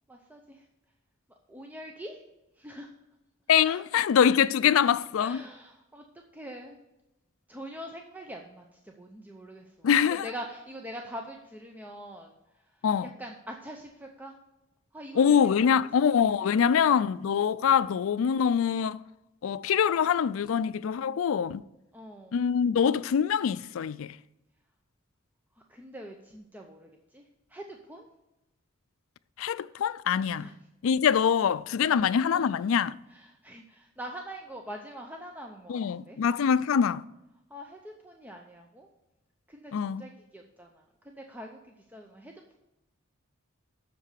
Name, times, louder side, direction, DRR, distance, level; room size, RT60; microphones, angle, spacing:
voice 1, 0.1-0.6 1.5-2.2 2.6-2.9 3.6-3.8 5.2-6.1 6.3-6.8 7.5-14.3 14.9-15.8 16.3-16.8 21.9-22.4 25.7-27.2 27.5-28.1 30.3-30.6 31.8-32.0 32.3-32.4 33.1-36.2 37.5-38.9 39.5-41.6 41.9-42.6, equal, 10° right, 0.6 m, -44 dB
voice 2, 3.5-5.4 9.8-10.3 12.8-13.1 15.2-19.0 19.4-21.6 22.3-24.2 29.4-30.5 30.8-33.0 35.7-37.0 39.7-40.0, left 7 dB, 75° left, 0.4 m, -24 dB
7.7 x 6.6 x 6.7 m
head